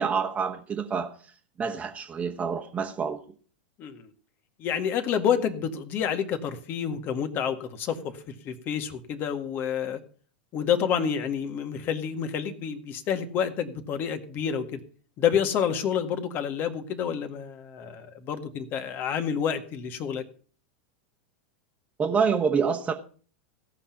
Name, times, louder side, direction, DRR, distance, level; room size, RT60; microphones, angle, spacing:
voice 1, 0.0-3.2 22.0-22.9, right 6 dB, 25° right, 0 dB, 1.5 m, -27 dB
voice 2, 3.8-4.1 4.6-10.0 10.5-14.8 15.2-20.2, left 8 dB, 40° left, 8 dB, 1.9 m, -29 dB
16.5 x 5.9 x 7.1 m, 0.43 s
hypercardioid pair, 100°, 5 cm